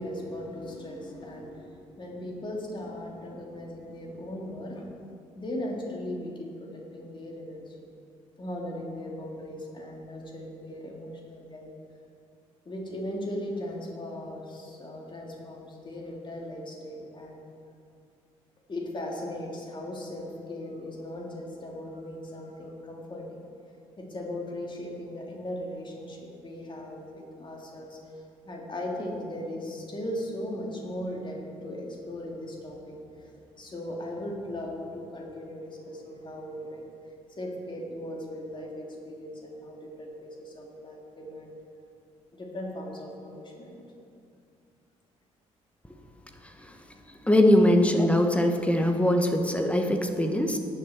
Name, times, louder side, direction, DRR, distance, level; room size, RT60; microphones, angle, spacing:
voice 1, 0.0-4.9 5.4-7.8 8.4-11.7 12.6-17.4 18.7-23.4 24.0-33.3 33.6-36.8 37.4-41.6 42.3-43.8, left 1 dB, 30° left, -1 dB, 3.1 m, -38 dB
voice 2, 47.2-50.6, left 1 dB, 5° left, 4 dB, 1.6 m, -22 dB
17.0 x 9.9 x 4.6 m, 2.5 s
figure-of-eight pair, 45°, 17 cm